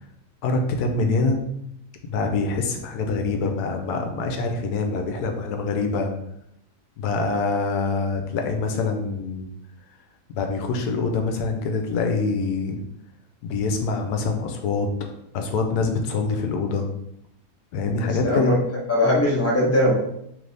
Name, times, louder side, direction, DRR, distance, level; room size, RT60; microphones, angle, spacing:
voice 1, 0.4-1.4 2.1-6.1 7.0-9.5 10.3-12.8 13.4-16.9 17.7-18.5, left 3 dB, 80° left, 4 dB, 1.2 m, -25 dB
voice 2, 18.0-18.5 18.9-19.9, left 1 dB, 10° left, -5 dB, 0.8 m, -20 dB
3.3 x 3.1 x 3.9 m, 0.78 s
omnidirectional pair, 1.7 m